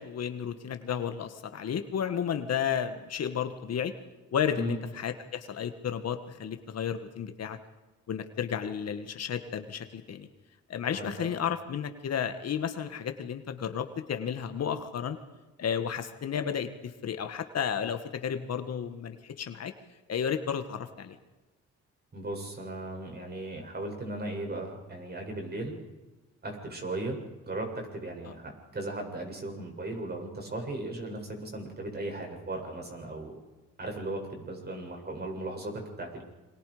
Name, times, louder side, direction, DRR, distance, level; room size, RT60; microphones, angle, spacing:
voice 1, 0.0-3.9 4.3-7.6 8.1-10.3 10.7-15.2 15.6-19.7 20.1-21.2, left 8 dB, 55° left, 8 dB, 1.8 m, -32 dB
voice 2, 10.9-11.3 22.1-25.8 26.4-27.2 27.4-27.7 27.9-33.4 33.8-35.7 36.0-36.2, right 2 dB, 35° right, 2 dB, 7.6 m, -37 dB
28.5 x 24.5 x 5.1 m, 1.2 s
cardioid pair, 90°, 30 cm